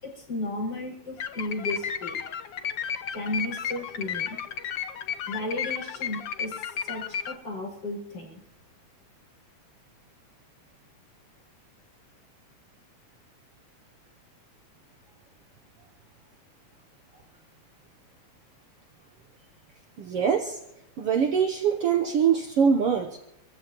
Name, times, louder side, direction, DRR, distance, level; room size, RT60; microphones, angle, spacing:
voice 1, 0.0-2.2 3.1-4.4 5.3-8.4, left 2 dB, 35° left, -4 dB, 6.4 m, -34 dB
sound 1, 1.2-7.3, left 8 dB, 75° left, 1.1 m, -33 dB
voice 2, 20.0-20.6 21.0-23.2, right 7 dB, 60° right, 4 dB, 1.7 m, -23 dB
26.0 x 15.0 x 3.1 m, 0.84 s
omnidirectional pair, 3.4 m